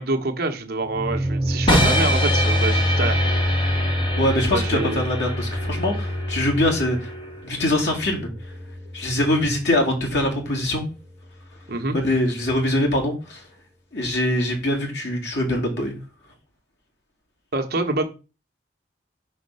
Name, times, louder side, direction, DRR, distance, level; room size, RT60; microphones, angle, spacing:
voice 1, 0.0-3.3 4.5-5.0 11.7-12.0 17.5-18.0, right 2 dB, 55° right, 1.0 m, -26 dB
sound 1, 0.9-9.8, left 1 dB, 5° right, 1.7 m, -26 dB
sound 2, 1.7-7.7, equal, 25° left, 1.3 m, -26 dB
voice 2, 4.2-7.1 7.4-8.3 8.9-10.9 11.9-13.4 13.9-16.0, left 1 dB, 70° left, 2.4 m, -23 dB
5.4 x 4.2 x 5.5 m
head